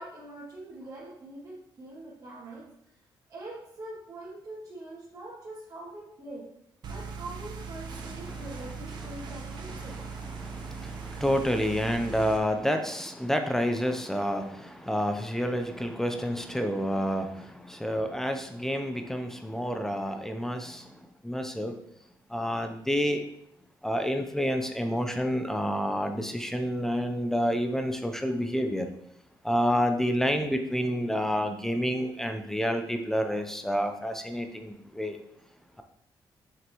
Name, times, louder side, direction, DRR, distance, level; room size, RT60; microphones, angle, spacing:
voice 1, 0.0-2.6 3.3-6.5 6.9-10.0 10.5-10.9, right 2 dB, 50° right, -9 dB, 2.6 m, -43 dB
sound 1, 6.8-12.4, right 5 dB, 65° right, 1.0 m, -40 dB
voice 2, 8.0-8.4 9.2-9.3 9.7-20.9 21.2-21.8 22.3-23.2 23.8-28.9 29.4-35.2, equal, 5° left, 6 dB, 0.6 m, -29 dB
7.5 x 5.7 x 3.1 m, 0.74 s
cardioid pair, 110°, 8 cm